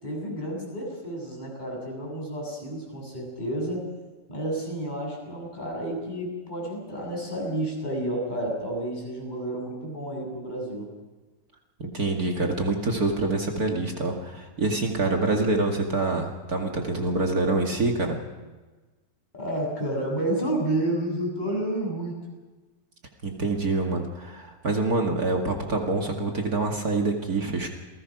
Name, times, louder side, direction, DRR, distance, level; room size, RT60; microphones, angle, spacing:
voice 1, 0.0-3.9 4.3-10.9 19.3-22.2, right 1 dB, 25° left, -1 dB, 7.6 m, -30 dB
voice 2, 11.8-18.2 23.2-27.7, right 2 dB, 60° right, 1 dB, 2.7 m, -26 dB
28.5 x 19.5 x 6.1 m, 1.2 s
omnidirectional pair, 1.8 m